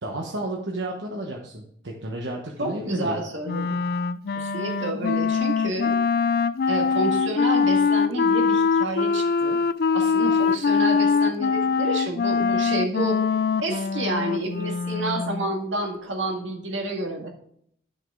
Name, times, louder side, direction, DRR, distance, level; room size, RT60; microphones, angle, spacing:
voice 1, 0.0-3.2, right 1 dB, 65° right, -1 dB, 1.2 m, -32 dB
voice 2, 2.6-3.8 4.4-5.9 6.7-9.6 9.9-13.2 13.6-17.3, right 1 dB, 80° right, 2 dB, 2.0 m, -29 dB
Wind instrument woodwind instrument, 3.5-15.5, left 5 dB, 55° left, 0.4 m, -23 dB
11.0 x 6.3 x 3.8 m, 0.67 s
head